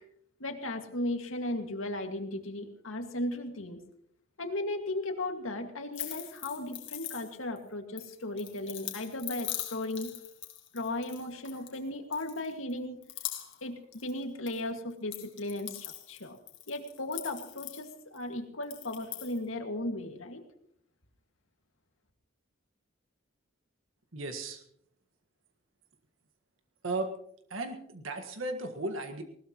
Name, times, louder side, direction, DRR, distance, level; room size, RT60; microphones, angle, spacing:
voice 1, 0.4-3.8 4.4-10.1 10.7-13.0 13.6-16.4 16.7-20.4, left 1 dB, 90° left, 5 dB, 2.1 m, -36 dB
sound 1, 5.9-7.6 8.0-11.8 12.1-12.7 13.0-14.6 14.9-18.2 18.6-19.4, left 13 dB, 65° left, 2.2 m, -42 dB
voice 2, 24.1-24.6 26.8-27.1 27.5-29.2, right 2 dB, 80° right, 5 dB, 1.7 m, -35 dB
20.0 x 19.5 x 3.1 m, 0.70 s
head